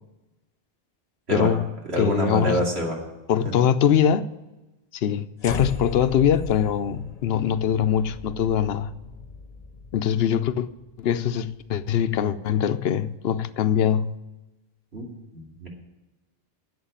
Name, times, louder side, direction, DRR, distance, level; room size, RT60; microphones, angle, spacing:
voice 1, 1.3-1.7 2.0-2.6 3.3-4.3 4.9-8.9 9.9-10.7 11.0-14.1, left 9 dB, 75° left, 0.8 m, -22 dB
voice 2, 1.9-3.0 14.9-15.1 15.3-15.7, right 2 dB, 85° right, 2.9 m, -26 dB
sound 1, 5.4-11.7, left 3 dB, 40° left, 1.0 m, -38 dB
11.5 x 7.9 x 8.8 m
omnidirectional pair, 1.0 m